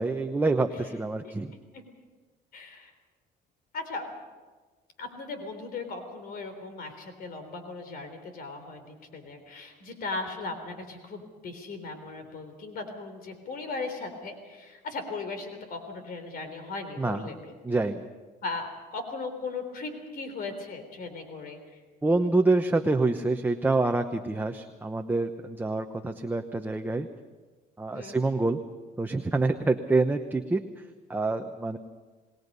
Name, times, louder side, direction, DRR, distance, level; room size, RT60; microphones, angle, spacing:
voice 1, 0.0-1.6 17.0-17.3 17.6-18.0 22.0-27.1 27.8-28.6 29.0-30.6 31.1-31.8, right 3 dB, 10° right, 5 dB, 0.9 m, -26 dB
voice 2, 2.5-2.9 3.7-4.0 5.0-17.5 18.4-21.8 27.9-28.2, left 3 dB, 60° left, 7 dB, 3.7 m, -38 dB
27.5 x 19.5 x 5.5 m, 1.3 s
cardioid pair, 110°, 17 cm